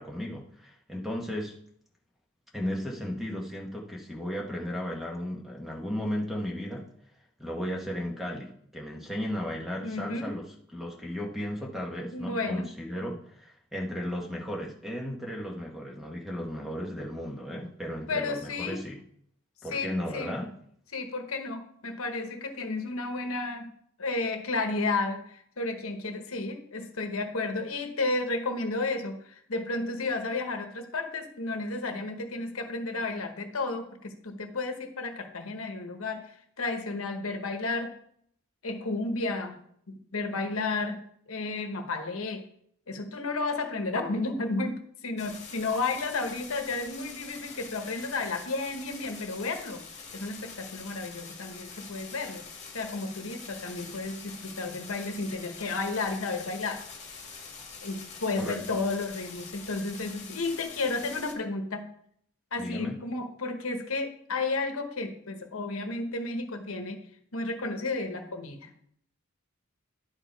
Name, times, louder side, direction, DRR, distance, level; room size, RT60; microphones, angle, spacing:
voice 1, 0.0-1.5 2.5-6.9 7.4-10.4 10.7-19.0 19.6-20.5 58.4-58.6 62.6-63.0, equal, ahead, -1 dB, 1.0 m, -35 dB
voice 2, 9.8-10.4 12.1-12.7 18.1-18.8 19.7-20.4 20.9-38.0 38.6-42.4 42.9-49.8 50.1-52.4 52.7-56.8 57.8-61.9 62.5-67.0 67.3-68.7, left 3 dB, 75° left, 6 dB, 1.0 m, -32 dB
sound 1, 45.2-61.3, left 5 dB, 30° left, 1.8 m, -45 dB
11.0 x 4.7 x 4.5 m, 0.67 s
head